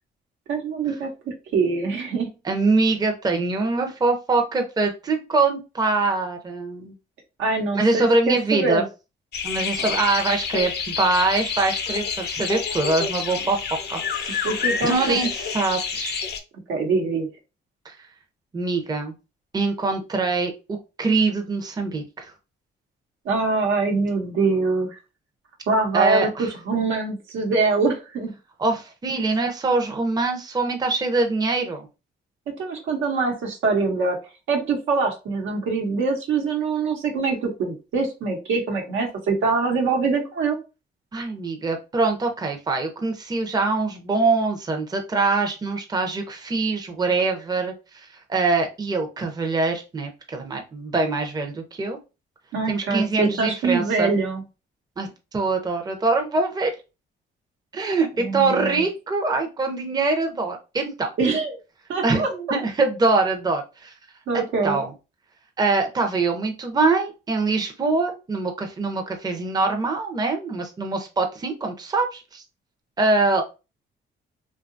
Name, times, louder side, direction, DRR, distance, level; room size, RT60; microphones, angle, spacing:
voice 1, 0.5-2.3 7.4-8.8 9.8-9.9 14.4-15.2 16.7-17.3 23.2-25.0 25.7-28.3 29.1-29.2 32.6-34.2 34.5-40.6 52.5-54.4 58.2-58.8 61.2-61.6 61.9-62.3 64.3-64.8, right 4 dB, 80° right, 2 dB, 0.9 m, -24 dB
voice 2, 2.4-6.9 7.7-8.8 9.4-13.6 13.9-14.5 14.8-15.3 15.5-16.2 17.9-18.0 18.5-19.1 19.5-22.3 25.9-26.5 28.6-31.9 41.1-52.0 52.7-54.1 55.0-56.7 57.7-61.1 62.0-63.9 64.6-64.9 65.6-72.4 73.0-73.4, right 3 dB, 20° right, 4 dB, 0.6 m, -24 dB
sound 1, 9.3-16.4, left 6 dB, 55° left, 0.5 m, -28 dB
2.8 x 2.3 x 2.5 m, 0.29 s
cardioid pair, 90°, 20 cm